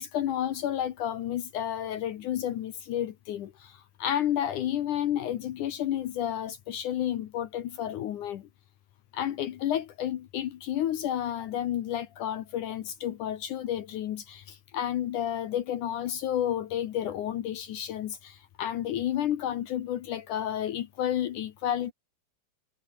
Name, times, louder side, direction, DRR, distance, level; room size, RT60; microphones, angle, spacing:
voice 1, 0.0-8.5 9.1-21.9, left 11 dB, 65° left, 2.3 m, -31 dB
omnidirectional pair, 4.3 m